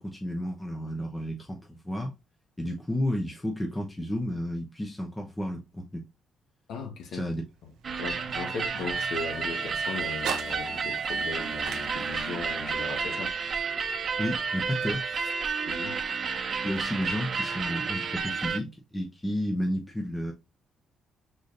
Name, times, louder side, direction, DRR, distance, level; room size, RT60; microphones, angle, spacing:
voice 1, 0.0-2.1 2.6-6.0 7.1-7.4 14.2-15.3 16.6-20.3, equal, 15° left, 0.9 m, -32 dB
voice 2, 6.7-7.3 8.0-13.3 15.7-16.0, left 4 dB, 80° left, 1.3 m, -37 dB
sound 1, 7.4-15.5, right 7 dB, 85° right, 0.8 m, -44 dB
sound 2, 7.8-18.6, right 5 dB, 50° right, 0.6 m, -31 dB
4.9 x 4.0 x 2.5 m
cardioid pair, 90°, 0 cm